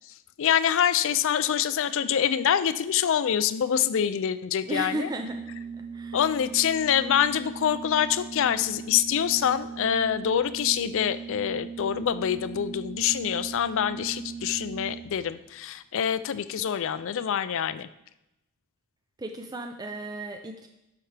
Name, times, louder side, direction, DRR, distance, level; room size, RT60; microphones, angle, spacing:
voice 1, 0.4-5.1 6.1-17.9, left 9 dB, 60° left, 14 dB, 0.4 m, -25 dB
voice 2, 4.7-5.4 5.9-6.2 19.2-20.7, right 2 dB, 20° right, 4 dB, 0.4 m, -34 dB
Organ, 5.0-15.3, right 5 dB, 50° right, 3.1 m, -39 dB
12.0 x 5.8 x 3.3 m, 0.90 s
head